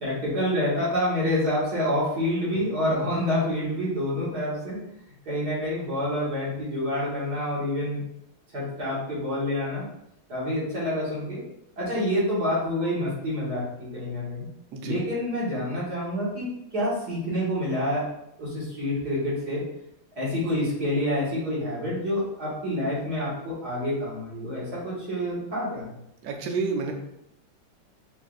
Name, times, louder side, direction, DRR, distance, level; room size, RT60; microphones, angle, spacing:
voice 1, 0.0-4.8 5.3-8.0 8.5-9.8 10.3-11.4 11.8-14.5 14.8-18.0 18.4-19.6 20.2-25.9, left 1 dB, 50° right, -9 dB, 2.1 m, -27 dB
voice 2, 26.2-26.9, right 4 dB, 75° right, 3 dB, 0.8 m, -29 dB
5.4 x 2.5 x 2.4 m, 0.80 s
omnidirectional pair, 2.2 m